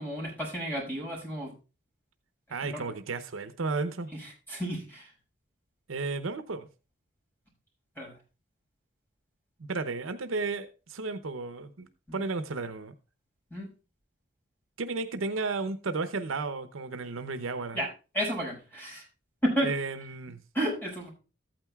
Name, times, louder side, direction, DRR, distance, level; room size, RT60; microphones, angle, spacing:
voice 1, 0.0-1.5 2.6-2.8 4.1-5.1 8.0-8.1 12.1-12.3 13.5-13.7 17.7-17.9 18.1-19.0 19.4-19.7 20.5-21.1, equal, 10° left, 5.2 m, -32 dB
voice 2, 2.5-4.1 5.9-6.7 9.6-12.9 14.8-17.8 19.6-20.4, right 3 dB, 85° right, 0.7 m, -33 dB
14.0 x 8.9 x 2.3 m
head